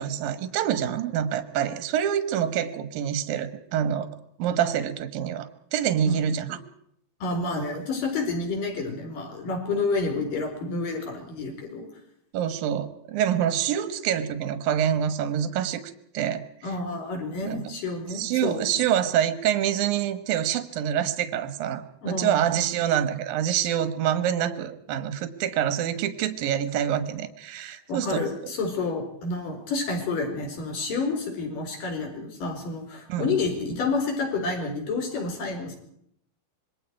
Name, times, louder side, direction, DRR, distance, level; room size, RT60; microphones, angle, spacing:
voice 1, 0.0-4.1 4.4-6.6 12.3-15.8 16.1-16.4 17.4-17.6 18.1-28.2 33.1-33.3, right 9 dB, 65° right, 10 dB, 2.5 m, -26 dB
voice 2, 7.2-11.9 16.6-18.9 22.0-22.4 27.9-35.8, left 3 dB, 45° left, 4 dB, 5.7 m, -29 dB
26.5 x 22.5 x 4.7 m, 0.70 s
omnidirectional pair, 5.8 m